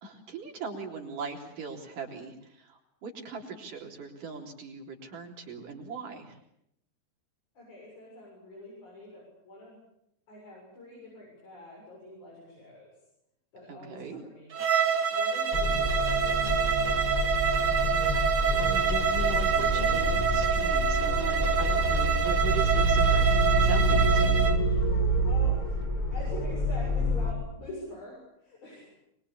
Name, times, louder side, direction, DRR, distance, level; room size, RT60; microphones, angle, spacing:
voice 1, 0.0-6.3 13.7-14.2 18.5-23.3 23.6-24.4 24.7-24.8, right 4 dB, 85° right, 1 dB, 5.3 m, -39 dB
voice 2, 7.6-9.8 10.3-12.9 13.5-14.5 15.1-16.2 16.8-17.5 25.2-25.6 26.1-28.9, left 1 dB, 65° left, -3 dB, 8.8 m, -45 dB
Bowed string instrument, 14.5-24.6, right 6 dB, 45° right, 1.6 m, -26 dB
sound 1, 15.5-27.3, right 1 dB, 15° left, 3.9 m, -27 dB
25.0 x 22.5 x 8.6 m, 0.77 s
omnidirectional pair, 3.6 m